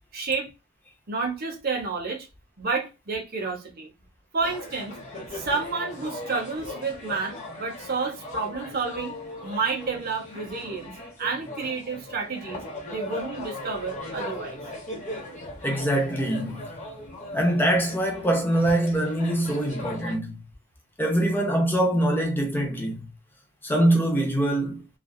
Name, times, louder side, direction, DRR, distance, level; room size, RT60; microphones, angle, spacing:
voice 1, 0.1-0.5 1.1-2.3 2.6-3.9 4.3-5.0 5.3-9.2 9.4-10.9 11.2-12.6 12.9-14.6, right 4 dB, 45° right, 0.9 m, -30 dB
sound 1, 4.4-20.2, left 1 dB, 35° left, 1.0 m, -38 dB
voice 2, 15.6-16.7 17.3-20.4 21.0-23.1 23.6-24.8, right 1 dB, 10° left, 0.5 m, -23 dB
3.3 x 2.3 x 2.3 m
head